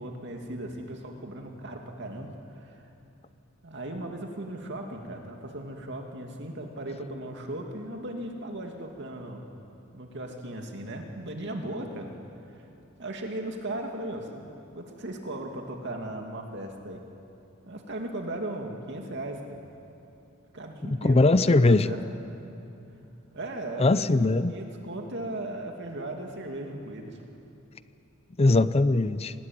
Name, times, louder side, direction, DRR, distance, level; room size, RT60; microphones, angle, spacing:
voice 1, 0.0-2.3 2.6-2.9 3.6-9.4 9.9-12.1 12.6-12.7 13.0-14.5 14.7-17.0 17.7-19.6 20.5-22.0 23.3-24.1 24.5-27.2, right 1 dB, 60° right, 2 dB, 2.5 m, -37 dB
voice 2, 20.8-21.9 23.8-24.5 28.4-29.3, left 2 dB, 30° left, 14 dB, 0.6 m, -21 dB
26.0 x 19.5 x 9.3 m, 2.7 s
head